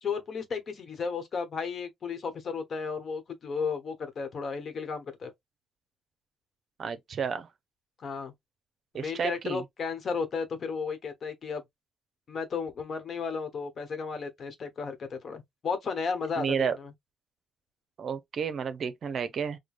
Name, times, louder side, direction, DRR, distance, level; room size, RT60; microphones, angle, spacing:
voice 1, 0.0-5.3 8.0-8.3 8.9-11.6 12.3-16.9, left 5 dB, 50° left, 1.0 m, -34 dB
voice 2, 6.8-7.5 8.9-9.6 16.4-16.8 18.0-19.6, right 6 dB, 55° right, 0.6 m, -31 dB
4.7 x 2.1 x 2.5 m
cardioid pair, 90°, 0 cm